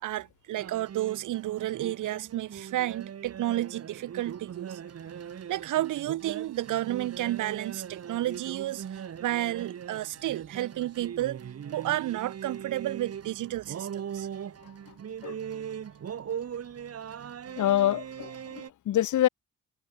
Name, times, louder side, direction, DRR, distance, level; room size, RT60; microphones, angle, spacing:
voice 1, 0.0-4.8 5.5-11.4 11.7-14.3, right 14 dB, 85° right, 5.2 m, -31 dB
sound 1, 0.6-18.7, right 8 dB, 55° right, 3.3 m, -40 dB
voice 2, 17.6-19.3, left 12 dB, 75° left, 4.3 m, -26 dB
cardioid pair, 90°, 30 cm